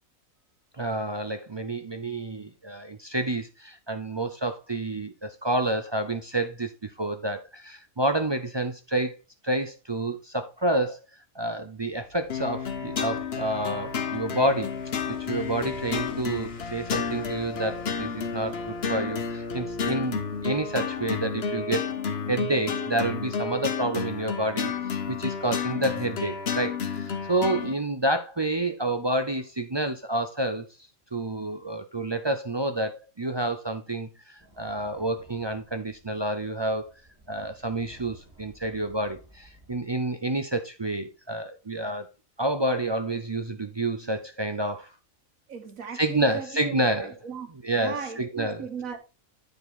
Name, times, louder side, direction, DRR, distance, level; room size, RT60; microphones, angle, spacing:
voice 1, 0.8-9.2 9.4-11.0 11.3-14.8 15.1-21.9 22.3-30.7 31.1-36.9 37.3-42.1 42.4-44.9 45.9-47.1 47.6-48.6, right 1 dB, 35° right, 0.4 m, -29 dB
sound 1, 11.7-22.1 22.4-22.5, left 4 dB, 30° left, 1.0 m, -51 dB
sound 2, 12.3-27.7, left 6 dB, 50° left, 1.1 m, -31 dB
sound 3, 34.4-39.8, right 1 dB, 10° right, 4.7 m, -55 dB
voice 2, 45.5-49.0, right 6 dB, 85° right, 1.7 m, -37 dB
9.1 x 5.0 x 4.0 m
omnidirectional pair, 1.4 m